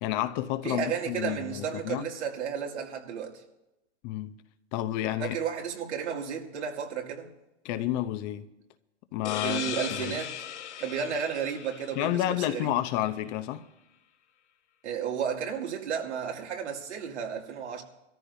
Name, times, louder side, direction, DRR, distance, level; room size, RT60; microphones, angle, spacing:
voice 1, 0.0-2.1 4.0-4.3 4.7-5.4 7.6-8.5 9.1-10.2 12.0-13.6, left 13 dB, 40° left, 0.8 m, -30 dB
voice 2, 0.6-3.4 5.2-7.3 9.4-10.3 10.8-12.7 14.8-17.8, right 7 dB, 75° right, 2.5 m, -33 dB
sound 1, 9.2-12.7, left 10 dB, 80° left, 1.1 m, -38 dB
23.0 x 14.0 x 2.7 m
hypercardioid pair, 125°, 35 cm